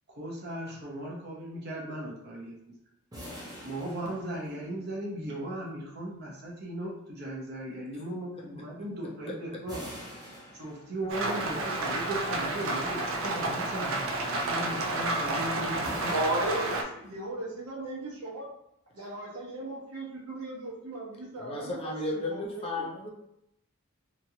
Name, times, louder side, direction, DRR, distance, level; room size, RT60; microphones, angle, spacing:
voice 1, 0.1-2.5 3.6-9.8 10.5-16.1, right 1 dB, 45° right, -3 dB, 0.8 m, -37 dB
sound 1, 3.1-5.0 9.7-11.3 15.8-17.4, equal, 15° right, 0.7 m, -46 dB
Rain, 11.1-16.8, right 2 dB, 65° right, 0.4 m, -31 dB
voice 2, 16.1-18.5 18.9-22.9, right 1 dB, 85° right, -4 dB, 1.0 m, -36 dB
voice 3, 21.4-23.1, left 2 dB, 25° left, -1 dB, 0.4 m, -34 dB
2.9 x 2.4 x 2.8 m, 0.79 s
head